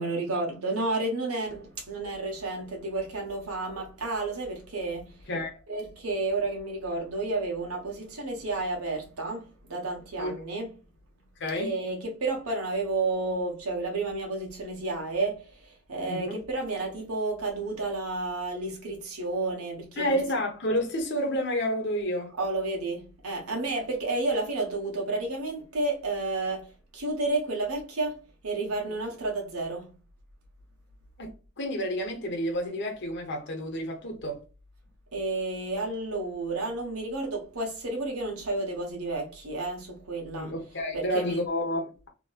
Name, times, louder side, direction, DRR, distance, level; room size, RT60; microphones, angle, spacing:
voice 1, 0.0-5.4 5.7-10.8 11.5-15.4 15.9-20.2 22.4-29.9 35.1-40.5 40.9-41.4, right 2 dB, 90° right, 1.1 m, -31 dB
voice 2, 5.3-5.6 10.2-10.3 11.4-11.8 16.1-16.4 20.0-22.3 31.2-34.4 40.3-42.1, equal, 55° left, 0.9 m, -30 dB
2.9 x 2.8 x 2.3 m
head